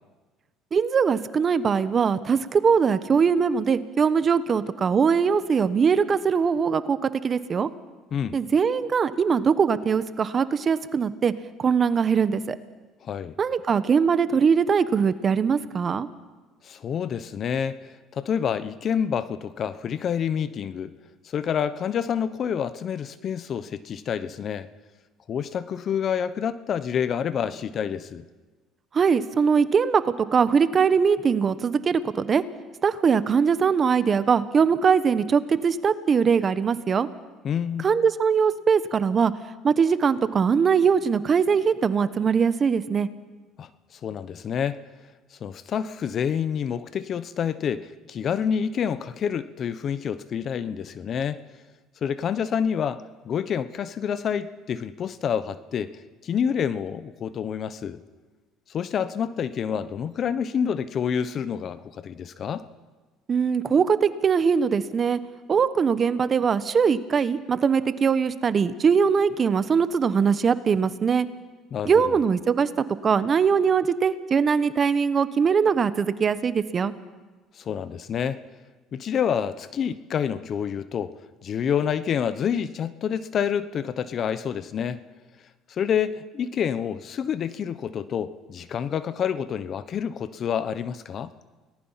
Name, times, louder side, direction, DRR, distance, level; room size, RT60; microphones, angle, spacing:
voice 1, 0.7-7.0 7.2-7.7 8.3-11.3 11.6-12.6 13.4-16.1 28.9-32.4 32.8-37.1 37.8-39.3 39.6-43.1 63.3-65.2 65.5-71.3 71.8-72.7 73.0-76.9, right 6 dB, 35° right, 14 dB, 1.1 m, -21 dB
voice 2, 13.0-13.3 16.6-17.8 18.1-20.9 21.2-24.7 25.3-28.2 37.4-37.9 43.6-43.7 44.0-44.8 45.4-51.4 52.0-55.9 56.2-58.0 58.7-62.6 71.7-72.2 77.6-78.4 78.9-81.1 81.4-85.0 85.7-91.3, left 8 dB, 50° left, 14 dB, 1.0 m, -28 dB
29.5 x 18.5 x 5.8 m, 1.3 s
supercardioid pair, 95°, 0 cm